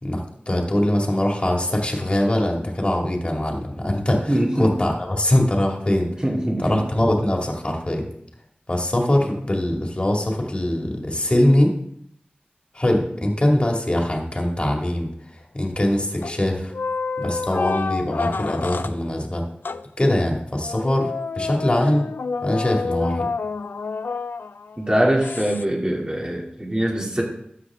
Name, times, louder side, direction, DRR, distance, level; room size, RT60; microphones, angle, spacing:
voice 1, 0.0-6.1 6.6-8.1 8.7-11.7 12.7-15.1 15.5-16.7 17.2-19.4 20.0-22.1 22.4-23.2, left 1 dB, 35° left, 0 dB, 2.2 m, -22 dB
voice 2, 4.3-4.7 6.2-6.8 24.8-27.2, right 1 dB, 25° right, -2 dB, 2.7 m, -22 dB
sound 1, 16.2-16.5 16.7-19.0 19.6-19.9 20.6-24.8 25.2-25.6, left 4 dB, 80° left, 0.4 m, -28 dB
12.5 x 7.5 x 3.6 m, 0.73 s
wide cardioid pair, 50°, 3 cm